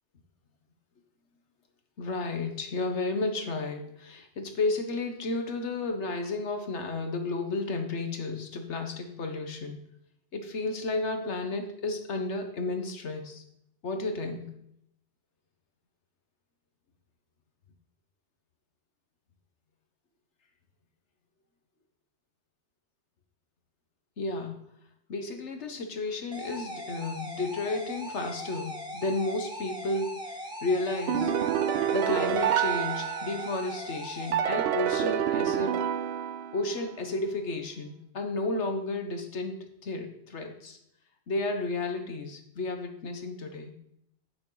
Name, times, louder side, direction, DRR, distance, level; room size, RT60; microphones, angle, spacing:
voice 1, 2.0-9.8 10.3-13.4 13.8-14.5 24.2-24.6 25.1-30.3 30.6-31.3 31.9-35.9 36.5-40.8 41.3-43.7, left 2 dB, 80° left, 5 dB, 1.6 m, -32 dB
sound 1, 26.3-34.3, equal, 5° right, 1.6 m, -40 dB
sound 2, 31.1-33.7 34.3-36.8, right 9 dB, 65° right, 0.7 m, -28 dB
8.7 x 8.7 x 4.0 m, 0.74 s
omnidirectional pair, 1.2 m